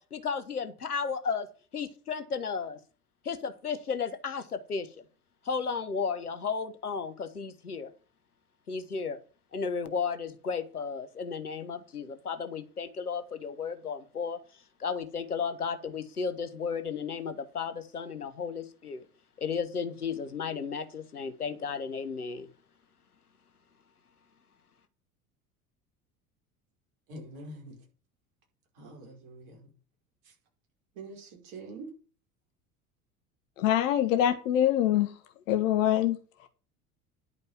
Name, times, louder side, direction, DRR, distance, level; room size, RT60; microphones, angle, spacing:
voice 1, 0.0-1.5 1.7-2.8 3.2-4.9 5.4-7.9 8.7-9.2 9.5-14.4 14.8-19.0 19.4-22.5, left 5 dB, 85° left, 1.1 m, -34 dB
voice 2, 27.1-27.8 28.7-29.7 30.2-30.3 30.9-32.0, right 2 dB, 55° right, 5.2 m, -45 dB
voice 3, 33.6-35.1 35.5-36.5, left 11 dB, 60° left, 1.3 m, -25 dB
10.5 x 5.3 x 7.3 m
figure-of-eight pair, 70°, 44 cm